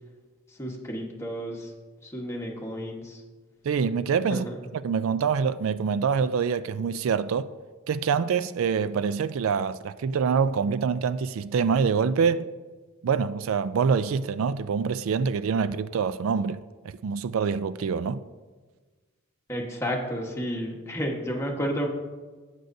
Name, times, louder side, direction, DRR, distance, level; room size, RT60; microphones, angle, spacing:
voice 1, 0.5-1.7 2.0-3.2 4.3-4.6 19.5-21.9, equal, 15° left, 1.3 m, -31 dB
voice 2, 3.6-4.5 4.8-7.5 7.9-12.5 13.0-18.2, right 6 dB, 70° right, 0.3 m, -25 dB
18.0 x 6.3 x 2.7 m
head